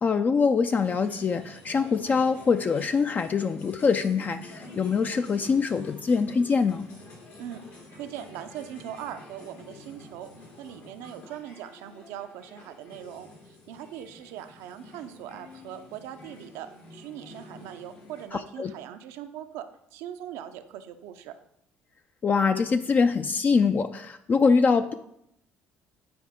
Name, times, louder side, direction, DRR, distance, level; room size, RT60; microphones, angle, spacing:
voice 1, 0.0-6.9 18.3-18.7 22.2-24.9, left 5 dB, 35° left, 9 dB, 0.4 m, -24 dB
sound 1, 0.7-18.2, left 2 dB, 80° left, 2.6 m, -49 dB
voice 2, 7.4-10.3 10.6-21.4, right 10 dB, 85° right, 8 dB, 0.6 m, -41 dB
9.4 x 4.6 x 3.6 m, 0.76 s
supercardioid pair, 80°, 5 cm